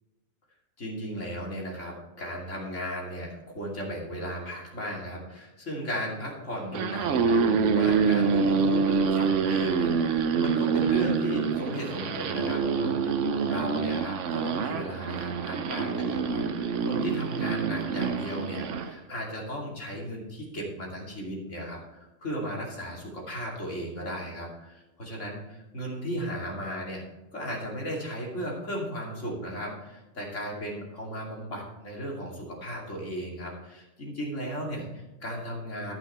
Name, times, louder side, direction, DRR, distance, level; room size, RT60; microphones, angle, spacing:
voice 1, 0.8-27.0 27.3-36.0, equal, 85° left, -2 dB, 3.0 m, -36 dB
sound 1, 6.6-18.9, right 5 dB, 80° right, 1.1 m, -26 dB
13.5 x 6.0 x 4.3 m, 1.1 s
omnidirectional pair, 1.2 m